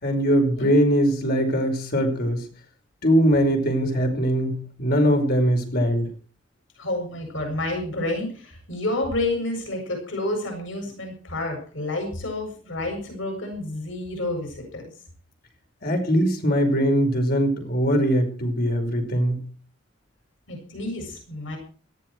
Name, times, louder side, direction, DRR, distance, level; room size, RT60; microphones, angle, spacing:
voice 1, 0.0-2.5 3.0-6.1 15.8-19.4, equal, 50° left, 4 dB, 5.2 m, -21 dB
voice 2, 6.8-14.8 20.5-21.6, left 2 dB, 75° left, 3 dB, 7.3 m, -29 dB
18.5 x 14.5 x 4.7 m, 0.41 s
head